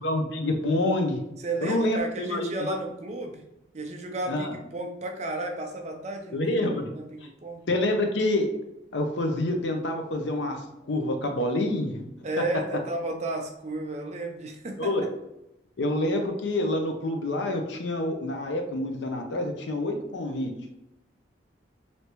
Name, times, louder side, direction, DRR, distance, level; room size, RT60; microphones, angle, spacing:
voice 1, 0.0-1.2 1.6-2.8 4.3-4.5 6.3-6.9 7.7-8.5 8.9-12.1 14.8-15.0 15.8-20.5, left 1 dB, 80° left, 4 dB, 0.6 m, -27 dB
voice 2, 1.4-3.4 3.7-6.6 6.9-7.6 12.2-14.9, right 2 dB, 40° right, 4 dB, 0.5 m, -33 dB
3.3 x 2.7 x 2.9 m, 0.87 s
head